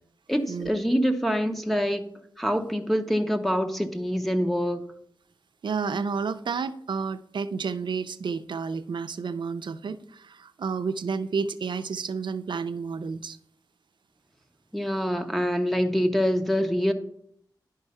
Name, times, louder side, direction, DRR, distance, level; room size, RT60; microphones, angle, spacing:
voice 1, 0.3-2.1 2.4-4.8 14.7-16.9, equal, ahead, 4 dB, 0.8 m, -25 dB
voice 2, 5.6-13.4, right 5 dB, 90° right, 11 dB, 0.5 m, -31 dB
10.5 x 4.7 x 5.5 m, 0.68 s
wide cardioid pair, 70°, 8 cm